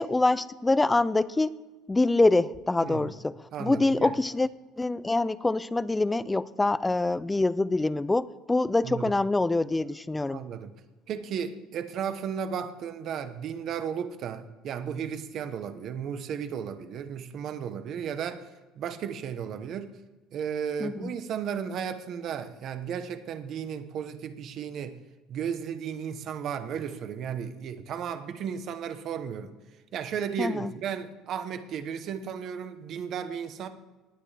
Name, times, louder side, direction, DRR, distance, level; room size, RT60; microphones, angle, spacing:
voice 1, 0.0-1.6 1.9-4.5 4.8-10.4 20.8-21.1 30.4-30.7, left 2 dB, 10° left, 17 dB, 0.3 m, -25 dB
voice 2, 2.8-3.1 3.5-4.1 8.8-9.1 10.3-10.7 11.1-18.5 18.8-19.9 20.3-25.0 25.3-29.5 29.9-33.7, right 7 dB, 40° right, 10 dB, 0.8 m, -34 dB
19.0 x 9.6 x 3.3 m, 1.2 s
cardioid pair, 175°, 0 cm